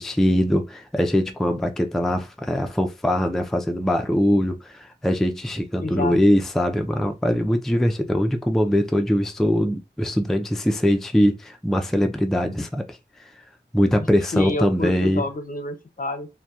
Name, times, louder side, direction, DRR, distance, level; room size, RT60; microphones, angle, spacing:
voice 1, 0.0-13.4 13.7-15.2, equal, ahead, 0.3 m, -22 dB
voice 2, 5.8-6.2 14.0-16.3, left 2 dB, 45° left, 0.5 m, -29 dB
2.7 x 2.1 x 2.3 m
wide cardioid pair, 65°, 19 cm